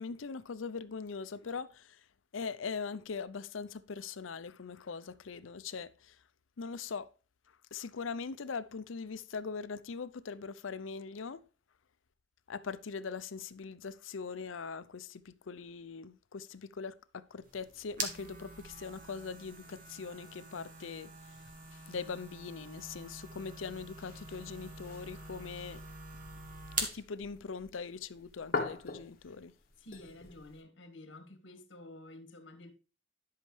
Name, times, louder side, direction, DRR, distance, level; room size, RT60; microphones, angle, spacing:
voice 1, 0.0-2.1 2.3-6.2 6.6-7.1 7.7-11.4 12.5-21.4 21.7-25.8 26.8-29.5, left 5 dB, 80° left, 0.6 m, -41 dB
sound 1, 17.4-27.0, right 3 dB, 45° right, 1.7 m, -44 dB
sound 2, 22.8-30.6, left 3 dB, 50° left, 1.6 m, -44 dB
voice 2, 29.8-32.7, left 1 dB, 65° left, 1.6 m, -51 dB
11.0 x 5.6 x 3.2 m
head